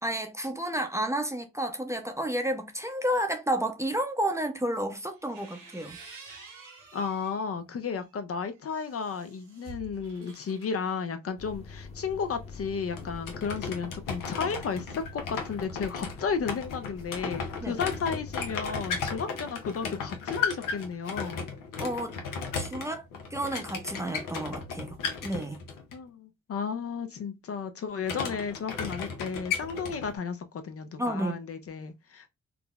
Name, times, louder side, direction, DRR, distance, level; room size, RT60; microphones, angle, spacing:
voice 1, 0.0-6.0 17.6-17.8 21.8-22.2 22.5-23.0 23.3-25.0 25.2-25.6 31.0-31.4, right 1 dB, 10° right, 0.5 m, -31 dB
sound 1, 5.1-7.4 7.9-10.7, right 4 dB, 80° right, 1.5 m, -49 dB
voice 2, 6.9-21.4 25.9-32.3, left 6 dB, 45° left, 0.5 m, -33 dB
sound 2, 11.4-19.2, left 4 dB, 20° left, 0.8 m, -46 dB
sound 3, 12.9-25.9 28.0-30.2, left 5 dB, 85° left, 0.7 m, -35 dB
3.6 x 2.0 x 2.3 m
supercardioid pair, 55°, 31 cm